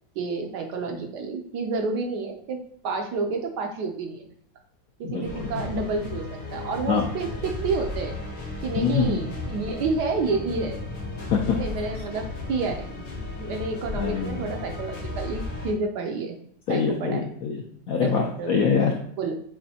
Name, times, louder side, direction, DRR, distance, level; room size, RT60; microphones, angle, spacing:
voice 1, 0.2-4.3 5.0-8.2 8.6-10.8 11.6-12.9 13.4-16.4 16.7-17.3 18.0-18.1 18.4-18.6 19.2-19.3, right 4 dB, 70° right, 3 dB, 1.1 m, -29 dB
voice 2, 5.0-5.6 6.9-7.1 8.8-9.2 11.2-11.6 13.9-14.4 16.7-19.0, left 6 dB, 75° left, 0 dB, 0.8 m, -25 dB
sound 1, 5.2-15.7, left 3 dB, 90° left, 2.2 m, -34 dB
7.2 x 2.6 x 2.8 m, 0.66 s
omnidirectional pair, 2.1 m